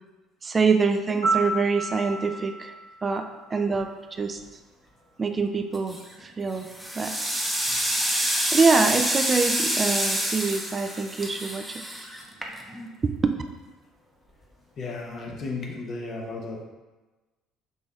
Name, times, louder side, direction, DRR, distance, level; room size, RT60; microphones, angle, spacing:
voice 1, 0.4-2.7 3.0-4.4 5.2-6.7 6.9-7.2 8.5-11.8 13.0-13.3, right 4 dB, 30° right, 6 dB, 0.3 m, -25 dB
Piano, 1.2-4.1 12.3-12.5, right 3 dB, 90° left, 1.2 m, -31 dB
sound 1, 5.7-6.1 6.6-12.9, right 1 dB, ahead, 0.7 m, -27 dB
voice 2, 14.8-16.6, left 3 dB, 50° left, 0 dB, 0.7 m, -34 dB
5.3 x 3.0 x 2.3 m, 1.2 s
hypercardioid pair, 60°, 0 cm